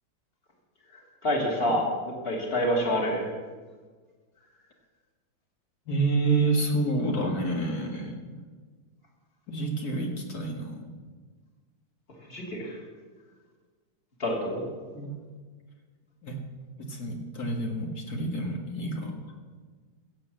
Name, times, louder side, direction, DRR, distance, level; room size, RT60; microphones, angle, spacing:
voice 1, 0.9-1.9 2.2-3.3 12.3-12.8 14.2-14.6, equal, 25° left, -1 dB, 3.0 m, -27 dB
voice 2, 5.9-8.4 9.5-10.9 14.9-15.1 16.2-16.4 16.8-19.3, right 2 dB, 45° left, 2 dB, 2.2 m, -29 dB
15.0 x 8.0 x 7.6 m, 1.5 s
omnidirectional pair, 2.3 m